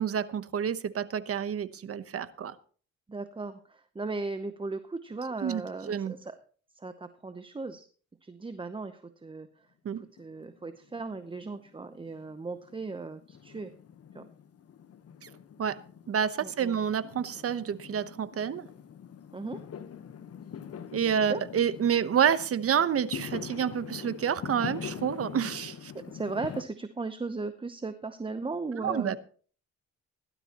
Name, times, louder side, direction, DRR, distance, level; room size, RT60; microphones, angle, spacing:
voice 1, 0.0-2.6 5.4-6.1 9.8-10.0 15.2-15.3 15.6-15.8 16.1-18.7 20.9-25.9 28.8-29.2, right 8 dB, 50° right, 14 dB, 1.0 m, -29 dB
voice 2, 3.1-6.4 6.7-7.9 8.2-9.5 10.2-13.7 14.1-14.3 16.4-16.8 19.3-19.6 21.3-21.4 26.1-29.2, right 3 dB, 15° right, 10 dB, 0.8 m, -37 dB
Fireworks, 10.2-11.1 11.4-26.6, left 8 dB, 55° left, 1.2 m, -43 dB
17.0 x 12.0 x 3.0 m, 0.42 s
cardioid pair, 90°, 30 cm